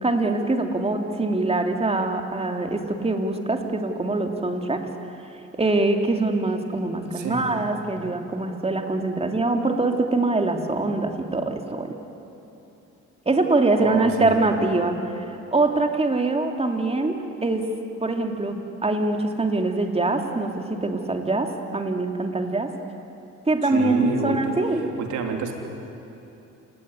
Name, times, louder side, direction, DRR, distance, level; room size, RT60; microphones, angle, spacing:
voice 1, 0.0-4.9 5.6-12.0 13.3-15.2 15.5-17.7 18.0-22.8 23.5-24.9, right 2 dB, 20° right, 4 dB, 2.9 m, -24 dB
voice 2, 7.1-7.5 13.8-14.4 23.6-25.5, right 5 dB, 85° right, 3 dB, 3.4 m, -29 dB
28.0 x 18.5 x 9.8 m, 2.9 s
cardioid pair, 80°, 29 cm